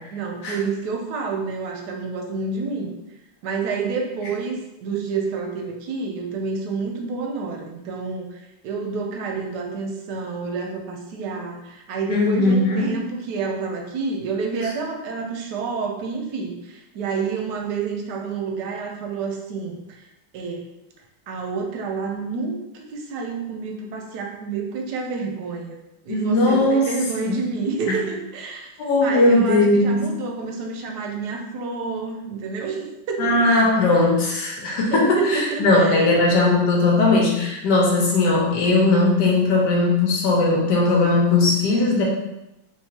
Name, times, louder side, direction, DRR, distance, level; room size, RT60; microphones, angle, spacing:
voice 1, 0.1-2.9 3.4-20.1 20.3-20.7 21.3-25.8 26.0-28.7 29.0-33.4 34.9-36.2, right 4 dB, 70° right, 1 dB, 1.1 m, -29 dB
voice 2, 12.1-13.0 26.1-26.9 27.9-28.0 28.8-30.1 33.2-42.0, left 2 dB, 70° left, -2 dB, 1.3 m, -18 dB
3.7 x 2.9 x 2.8 m, 0.90 s
omnidirectional pair, 2.1 m